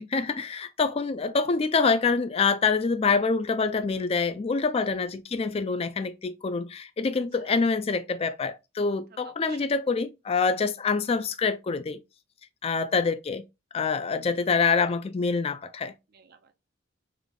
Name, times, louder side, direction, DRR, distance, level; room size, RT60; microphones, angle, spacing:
voice 1, 0.0-12.0 12.6-13.4 13.7-15.9, left 4 dB, 30° left, 0.3 m, -26 dB
voice 2, 4.6-5.1 7.4-7.6 9.2-9.7 14.2-14.5 16.1-16.5, right 5 dB, 45° right, 0.4 m, -52 dB
3.4 x 2.3 x 3.6 m
head